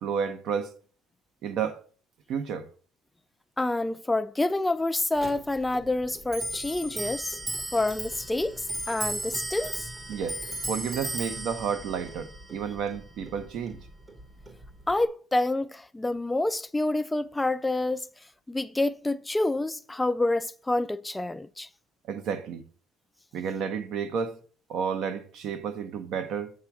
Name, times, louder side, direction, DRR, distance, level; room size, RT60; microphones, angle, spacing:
voice 1, 0.0-0.7 1.4-1.8 2.3-2.7 10.1-10.4 10.7-13.9 22.1-22.6 23.3-24.4 24.7-26.5, right 7 dB, 65° right, 0.9 m, -31 dB
voice 2, 3.6-7.4 7.7-9.9 14.9-18.1 18.5-21.7, left 2 dB, 10° left, 0.3 m, -28 dB
Clock, 5.2-15.1, right 1 dB, 30° right, 1.0 m, -37 dB
7.5 x 3.6 x 6.0 m
cardioid pair, 110°, 0 cm